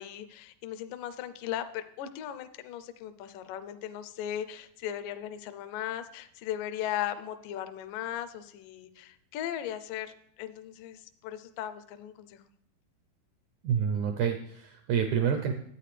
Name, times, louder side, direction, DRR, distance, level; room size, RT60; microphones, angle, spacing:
voice 1, 0.0-12.4, left 11 dB, 80° left, 11 dB, 2.1 m, -37 dB
voice 2, 13.6-15.5, right 7 dB, 85° right, 5 dB, 1.7 m, -28 dB
11.5 x 8.9 x 3.3 m, 0.72 s
omnidirectional pair, 4.2 m